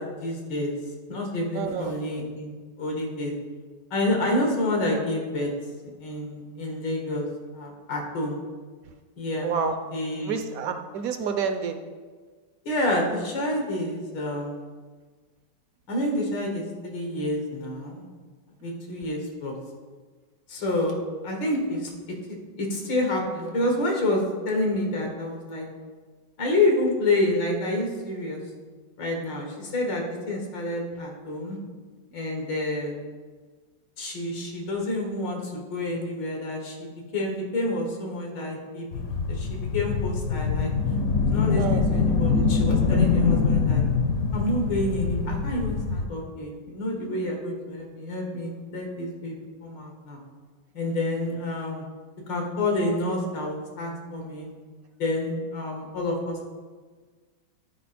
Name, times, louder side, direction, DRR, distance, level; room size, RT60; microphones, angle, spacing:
voice 1, 0.2-0.7 1.1-3.3 3.9-5.5 6.0-7.3 7.5-8.4 9.2-9.5 9.9-10.4 12.7-14.6 15.9-18.1 18.6-19.6 20.5-21.0 21.2-22.2 22.6-25.7 26.4-28.4 29.0-31.6 32.1-33.0 34.0-38.9 39.3-40.7 41.2-43.8 44.3-49.4 49.6-50.2 50.7-51.9 52.3-54.5 55.0-56.5, left 1 dB, 85° left, 1 dB, 2.2 m, -28 dB
voice 2, 1.5-1.9 9.4-9.8 10.2-11.8 41.6-41.8, right 6 dB, 70° right, 7 dB, 0.9 m, -28 dB
sound 1, 38.9-46.0, left 5 dB, 60° left, 1.2 m, -24 dB
11.5 x 4.9 x 4.2 m, 1.4 s
omnidirectional pair, 1.9 m